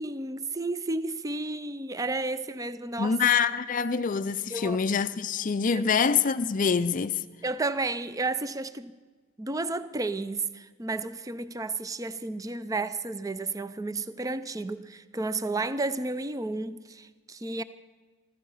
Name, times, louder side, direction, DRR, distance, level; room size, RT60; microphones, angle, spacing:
voice 1, 0.0-3.2 4.5-4.8 5.7-5.8 7.4-8.9 9.4-17.6, right 2 dB, 15° right, 0.5 m, -32 dB
voice 2, 3.0-7.2, left 6 dB, 40° left, 0.4 m, -25 dB
15.0 x 14.5 x 5.6 m
head